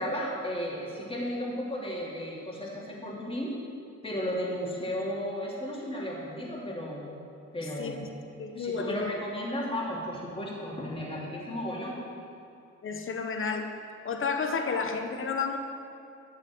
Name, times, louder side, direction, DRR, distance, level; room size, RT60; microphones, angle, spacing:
voice 1, 0.0-3.5 4.0-7.0 7.5-8.0 8.6-12.0, equal, 20° left, -4 dB, 2.8 m, -34 dB
voice 2, 8.4-9.1 12.8-13.7 14.0-15.6, left 5 dB, 45° left, 5 dB, 1.1 m, -31 dB
11.5 x 6.9 x 6.3 m, 2.7 s
cardioid pair, 90°, 30 cm